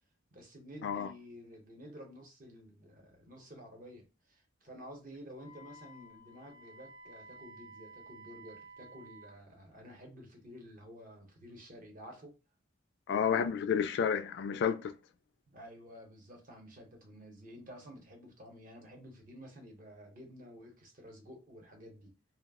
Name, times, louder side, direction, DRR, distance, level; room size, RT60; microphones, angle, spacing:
voice 1, 0.3-12.3 15.5-22.1, equal, 45° right, 0.8 m, -51 dB
Wind instrument woodwind instrument, 5.3-9.4, right 2 dB, 85° right, 0.7 m, -53 dB
voice 2, 13.1-15.0, left 7 dB, 55° left, 0.3 m, -30 dB
2.3 x 2.0 x 3.5 m
head